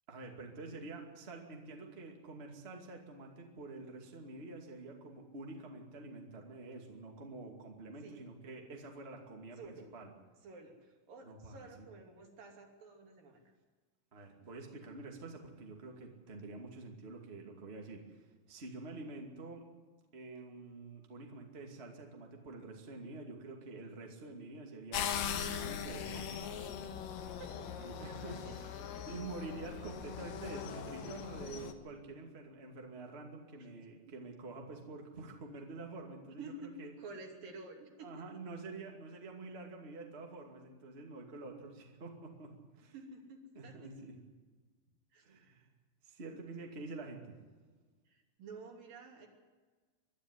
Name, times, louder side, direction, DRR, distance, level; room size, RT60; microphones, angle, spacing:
voice 1, 0.1-10.1 11.2-11.9 14.1-19.6 20.1-26.5 27.7-28.7 29.1-36.9 38.0-42.9 43.5-44.2 45.2-45.7 46.0-47.3, right 3 dB, 20° right, 1 dB, 2.1 m, -48 dB
voice 2, 9.6-9.9 10.4-13.4 27.4-27.6 28.2-28.9 33.6-33.7 36.2-36.7 37.0-38.1 42.9-43.9 45.1-45.2 48.1-49.3, right 3 dB, 70° right, 1 dB, 4.6 m, -51 dB
sound 1, 24.9-31.7, left 8 dB, 70° left, 2.9 m, -40 dB
22.5 x 12.0 x 9.7 m, 1.4 s
omnidirectional pair, 4.1 m